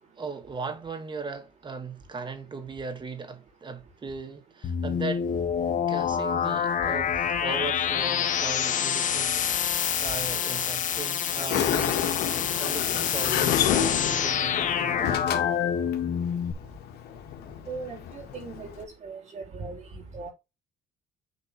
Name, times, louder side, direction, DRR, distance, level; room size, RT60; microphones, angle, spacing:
voice 1, 0.2-5.3 5.9-9.4 9.8-12.1 12.5-15.2, right 4 dB, 25° right, 1.9 m, -38 dB
sound 1, 4.6-16.5, left 8 dB, 50° left, 1.5 m, -27 dB
Sliding door, 11.3-18.8, left 9 dB, 70° left, 1.6 m, -30 dB
voice 2, 17.7-20.3, right 4 dB, 45° right, 3.9 m, -39 dB
9.8 x 5.1 x 3.3 m
cardioid pair, 110°, 17 cm